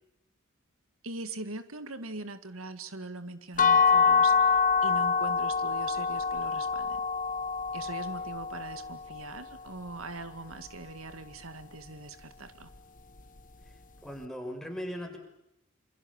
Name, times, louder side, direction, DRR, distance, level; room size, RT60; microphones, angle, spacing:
voice 1, 1.0-7.0 7.7-12.7, right 3 dB, 80° right, 11 dB, 2.1 m, -42 dB
sound 1, 3.6-9.4, left 5 dB, 40° left, 1.2 m, -26 dB
voice 2, 14.0-15.2, equal, ahead, 3 dB, 6.0 m, -38 dB
28.0 x 27.5 x 7.3 m, 0.79 s
head